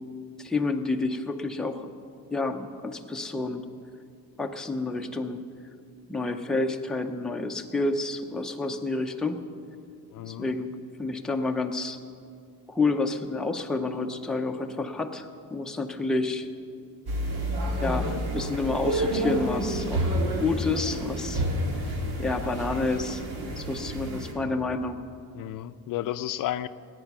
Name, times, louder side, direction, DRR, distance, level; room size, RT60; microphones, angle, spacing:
voice 1, 0.4-1.9 2.3-3.6 4.4-5.4 6.1-9.4 10.3-10.7 11.0-12.0 12.7-16.5 17.8-20.1 20.4-21.4 22.2-23.2 23.6-25.0, left 3 dB, ahead, 3 dB, 0.5 m, -29 dB
voice 2, 10.1-10.5 25.3-26.7, left 13 dB, 60° left, 13 dB, 0.5 m, -32 dB
sound 1, 17.1-24.3, right 1 dB, 90° right, 2.2 m, -29 dB
19.0 x 9.1 x 6.0 m, 2.4 s
cardioid pair, 175°, 37 cm